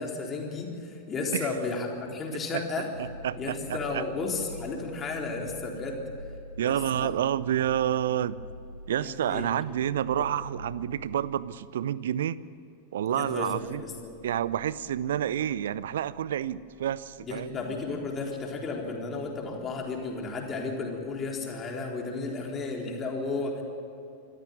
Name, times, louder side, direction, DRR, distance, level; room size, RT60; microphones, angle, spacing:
voice 1, 0.0-2.9 3.4-6.0 6.6-7.1 9.0-9.5 10.1-10.3 13.1-14.1 17.2-23.6, left 3 dB, 25° left, 0 dB, 4.0 m, -33 dB
sound 1, 2.9-12.0, equal, 90° right, 0.8 m, -44 dB
voice 2, 3.0-3.6 3.9-4.0 6.6-8.4 8.9-12.4 12.9-13.8 14.2-17.6, right 10 dB, 60° right, 19 dB, 0.6 m, -29 dB
sound 2, 13.1-21.6, left 4 dB, 45° left, 4.4 m, -54 dB
25.5 x 14.5 x 9.3 m, 2.7 s
figure-of-eight pair, 90°, 0 cm